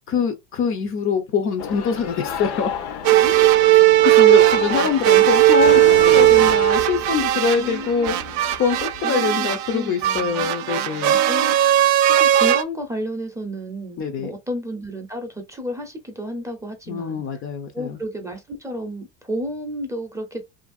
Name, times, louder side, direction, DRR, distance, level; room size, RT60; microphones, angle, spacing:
voice 1, 0.0-2.7 4.0-8.2 8.6-11.2 14.0-14.3 16.9-18.0, left 6 dB, 35° left, 0.5 m, -24 dB
sound 1, 1.6-9.0, left 7 dB, 70° left, 0.8 m, -32 dB
sound 2, 3.0-12.6, right 14 dB, 55° right, 0.5 m, -17 dB
voice 2, 3.1-3.8 6.3-6.5 7.3-8.3 9.0-10.5 11.2-11.5 12.1-17.2 17.7-20.4, equal, 10° right, 0.6 m, -32 dB
2.8 x 2.6 x 2.4 m
supercardioid pair, 125°, 37 cm